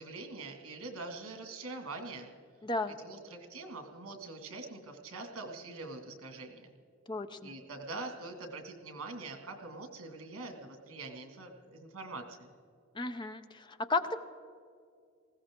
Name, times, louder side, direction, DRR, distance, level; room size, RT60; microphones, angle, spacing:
voice 1, 0.0-2.3 3.0-6.7 7.4-12.5, right 3 dB, 85° right, 5 dB, 2.1 m, -44 dB
voice 2, 2.6-3.0 7.1-7.5 12.9-14.2, left 2 dB, 20° left, 9 dB, 0.6 m, -34 dB
19.5 x 16.0 x 3.7 m, 2.3 s
head